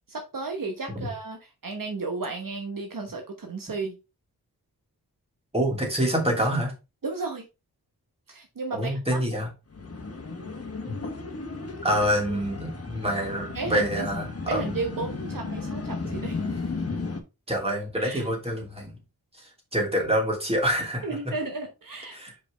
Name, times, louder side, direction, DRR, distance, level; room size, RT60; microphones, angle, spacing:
voice 1, 0.1-4.0 7.0-7.4 8.3-9.2 13.5-14.1 14.5-16.6 18.0-18.3 21.0-22.2, right 3 dB, 60° right, 1.1 m, -33 dB
voice 2, 5.5-6.7 8.7-9.5 10.9-11.0 11.8-14.7 17.5-19.0 19.4-19.5 19.7-21.1 22.1-22.3, equal, 15° right, 2.7 m, -26 dB
sound 1, 9.7-17.2, left 4 dB, 40° left, 1.2 m, -34 dB
6.0 x 5.1 x 3.3 m
wide cardioid pair, 95°, 38 cm